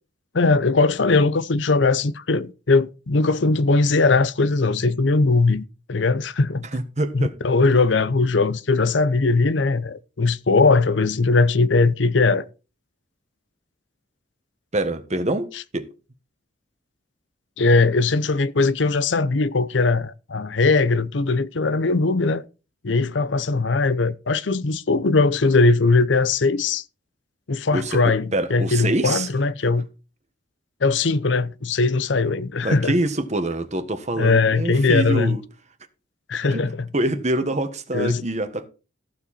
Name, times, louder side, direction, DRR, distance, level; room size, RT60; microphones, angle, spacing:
voice 1, 0.3-6.6 7.1-12.5 17.6-22.4 22.8-26.8 27.5-29.9 30.8-33.0 34.2-35.4 36.3-36.9 37.9-38.2, left 3 dB, 70° left, 0.7 m, -20 dB
voice 2, 6.7-7.3 14.7-15.9 27.7-29.3 32.6-35.4 36.5-36.6 36.9-38.7, right 1 dB, 35° right, 1.4 m, -25 dB
14.5 x 7.4 x 4.3 m
head